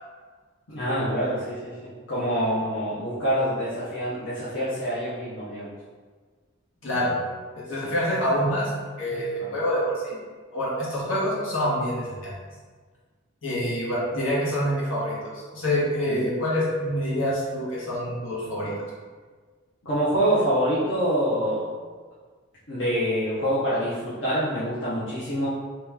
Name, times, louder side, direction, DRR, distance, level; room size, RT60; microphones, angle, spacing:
voice 1, 0.7-5.7 7.7-7.9 9.4-9.5 16.1-16.2 19.8-21.7 22.7-25.5, equal, 70° left, -11 dB, 0.9 m, -26 dB
voice 2, 6.8-7.2 7.5-8.7 9.0-10.2 10.5-12.3 13.4-18.7, equal, 85° left, -7 dB, 1.3 m, -26 dB
3.1 x 3.0 x 3.5 m, 1.5 s
head